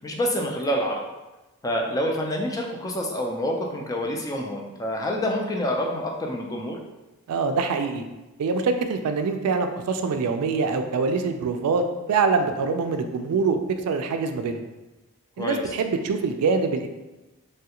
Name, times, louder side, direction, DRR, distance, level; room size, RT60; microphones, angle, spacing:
voice 1, 0.0-1.0 1.6-6.8 15.4-15.6, equal, 15° left, 0 dB, 0.3 m, -27 dB
voice 2, 7.3-8.0 8.4-11.8 12.1-14.6 15.4-16.9, right 4 dB, 85° right, 6 dB, 0.3 m, -24 dB
3.2 x 2.3 x 2.8 m, 1.1 s
head